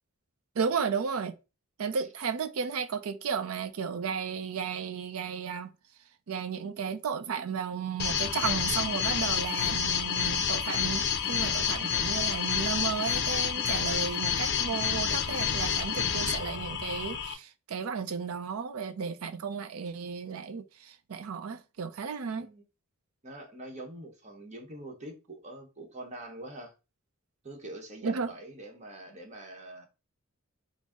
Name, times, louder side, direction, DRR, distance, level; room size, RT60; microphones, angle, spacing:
voice 1, 0.6-1.3 1.8-5.7 6.3-22.5 28.0-28.3, right 6 dB, 85° right, 0.5 m, -34 dB
sound 1, 8.0-17.3, left 7 dB, 55° left, 0.5 m, -29 dB
voice 2, 22.3-22.6 23.2-26.7 27.4-29.9, right 1 dB, 35° right, 0.9 m, -44 dB
3.9 x 2.0 x 3.5 m
head